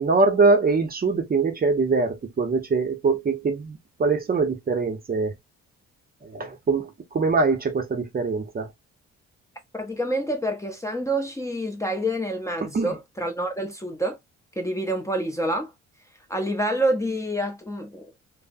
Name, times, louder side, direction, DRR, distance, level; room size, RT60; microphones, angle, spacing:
voice 1, 0.0-5.3 6.2-8.7 12.7-12.9, right 4 dB, 30° right, 0.6 m, -23 dB
voice 2, 9.7-14.2 14.6-15.7 16.3-18.1, right 1 dB, 10° left, 0.6 m, -27 dB
3.3 x 2.0 x 2.5 m
cardioid pair, 90°, 30 cm